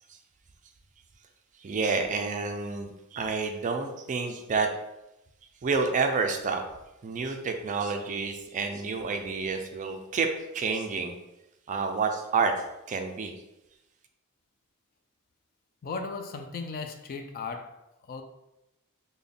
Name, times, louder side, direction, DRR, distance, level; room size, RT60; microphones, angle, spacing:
voice 1, 1.6-4.7 5.6-6.6 7.0-11.1 11.7-13.3, right 4 dB, 35° right, 0.4 m, -29 dB
voice 2, 15.8-18.2, left 4 dB, 40° left, 0.3 m, -37 dB
3.4 x 2.2 x 3.7 m
head